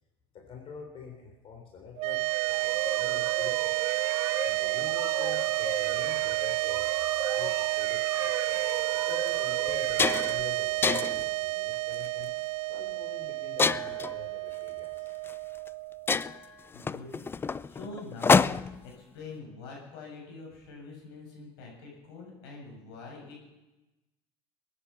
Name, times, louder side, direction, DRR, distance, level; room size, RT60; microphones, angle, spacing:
voice 1, 0.3-3.8 4.4-6.9 7.3-8.5 8.9-12.3 12.7-15.1, left 6 dB, 45° left, 1 dB, 3.6 m, -46 dB
sound 1, 2.0-16.4, right 22 dB, 60° right, 0.5 m, -30 dB
sound 2, 2.2-11.0, right 3 dB, 20° right, 2.0 m, -38 dB
sound 3, 8.5-8.7 9.3-9.4 9.7-10.4 10.8-11.3 11.9-12.2 13.6-14.1 15.3-15.4 15.7-15.8 16.1-18.9, left 5 dB, 20° left, 0.4 m, -26 dB
voice 2, 16.7-17.2 17.7-23.4, left 3 dB, 85° left, -1 dB, 7.0 m, -45 dB
21.0 x 10.0 x 5.8 m, 1.0 s
supercardioid pair, 100°, 13 cm